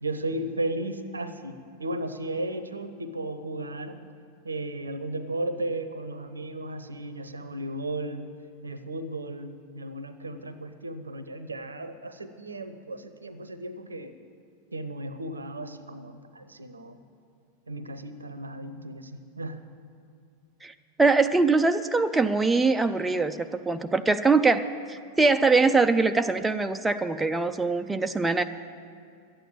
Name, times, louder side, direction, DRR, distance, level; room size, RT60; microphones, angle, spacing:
voice 1, 0.0-4.0 4.4-8.3 8.6-14.1 14.7-17.0 17.7-19.6, right 1 dB, 80° right, 12 dB, 0.7 m, -35 dB
voice 2, 21.0-28.4, right 3 dB, 10° right, 7 dB, 0.4 m, -23 dB
12.0 x 9.0 x 8.8 m, 2.4 s
figure-of-eight pair, 90°, 0 cm